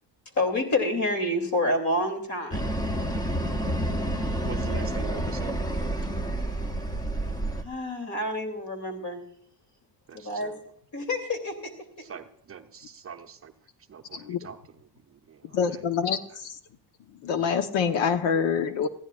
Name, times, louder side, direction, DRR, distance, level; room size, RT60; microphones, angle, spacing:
voice 1, 0.3-2.6 7.6-9.2 10.1-10.5 10.9-12.1, left 1 dB, 40° left, 5 dB, 2.9 m, -28 dB
sound 1, 2.5-7.6, right 1 dB, 10° left, 0.7 m, -29 dB
voice 2, 4.5-5.6 10.1-10.6 12.0-13.5 13.9-14.6 14.9-15.8, right 6 dB, 30° right, 5 dB, 0.7 m, -43 dB
voice 3, 15.5-16.6 17.2-18.9, left 6 dB, 85° left, 9 dB, 1.2 m, -26 dB
20.5 x 15.0 x 2.5 m, 0.64 s
cardioid pair, 165°, 44 cm